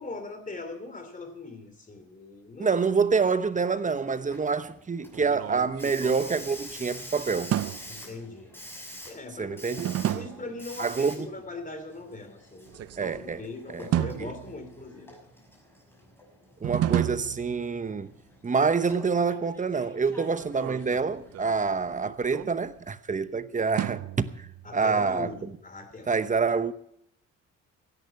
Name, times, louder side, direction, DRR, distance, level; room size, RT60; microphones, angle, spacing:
voice 1, 0.0-2.8 3.1-3.3 7.9-8.5 9.1-15.1 24.6-26.1, left 3 dB, 25° left, 2.9 m, -41 dB
voice 2, 2.6-7.6 9.4-9.9 10.8-11.3 13.0-13.4 13.7-13.9 14.2-14.3 16.6-18.1 18.4-24.5 24.7-25.3 26.1-26.7, right 5 dB, 25° right, 0.9 m, -27 dB
Hiss, 3.5-21.9, equal, 5° left, 6.1 m, -47 dB
sound 1, 5.1-6.9 7.5-8.1 9.8-10.6 12.7-13.4 13.9-15.0 16.6-18.0 20.4-22.9 23.8-24.7, right 12 dB, 55° right, 0.5 m, -32 dB
16.0 x 11.0 x 5.8 m
cardioid pair, 90°, 30 cm